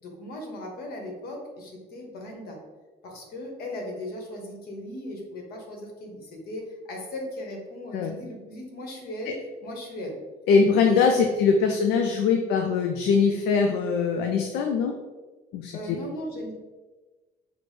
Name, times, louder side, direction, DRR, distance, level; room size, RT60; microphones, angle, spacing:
voice 1, 0.0-2.6 3.0-10.2 10.8-11.0 15.7-16.5, left 1 dB, 65° left, 1 dB, 1.1 m, -37 dB
voice 2, 10.5-14.9 15.5-15.7, left 5 dB, 85° left, 3 dB, 0.4 m, -22 dB
6.0 x 2.0 x 3.2 m, 1.3 s
cardioid pair, 110°, 17 cm